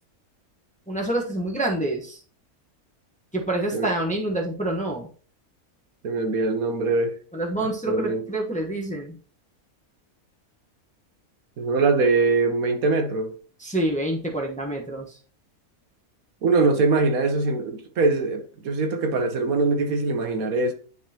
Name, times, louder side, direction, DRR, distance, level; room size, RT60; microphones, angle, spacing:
voice 1, 0.9-2.2 3.3-5.1 7.3-9.2 13.6-15.2, right 1 dB, 5° left, 0.9 m, -27 dB
voice 2, 6.0-7.2 7.9-8.2 11.6-13.3 16.4-20.7, right 3 dB, 75° right, 1.4 m, -22 dB
10.5 x 4.1 x 2.9 m
omnidirectional pair, 1.5 m